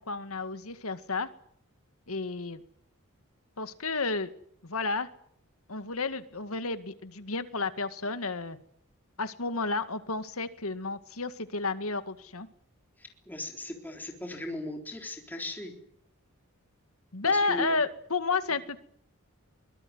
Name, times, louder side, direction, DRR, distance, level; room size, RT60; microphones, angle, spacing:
voice 1, 0.1-1.3 2.1-2.6 3.6-4.3 4.6-5.1 5.7-8.6 9.2-12.5 17.1-18.8, left 3 dB, 75° left, 11 dB, 2.0 m, -31 dB
voice 2, 13.3-15.7 17.2-17.7, left 1 dB, 10° left, 2 dB, 3.8 m, -37 dB
24.5 x 20.5 x 9.6 m, 0.68 s
head